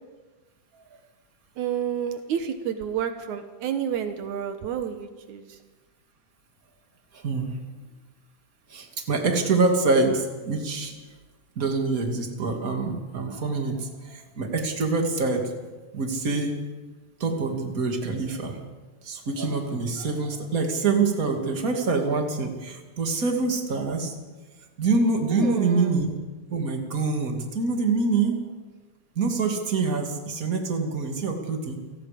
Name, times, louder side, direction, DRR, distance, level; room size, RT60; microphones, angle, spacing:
voice 1, 1.6-5.6 25.3-26.0, right 8 dB, 80° right, 7 dB, 2.5 m, -30 dB
voice 2, 7.1-7.6 8.7-11.1 11.6-15.5 15.9-16.6 17.2-18.6 19.0-24.2 24.8-26.2 26.5-28.4 29.2-31.8, right 3 dB, 30° right, 3 dB, 2.7 m, -25 dB
28.5 x 18.5 x 5.2 m, 1.3 s
omnidirectional pair, 3.4 m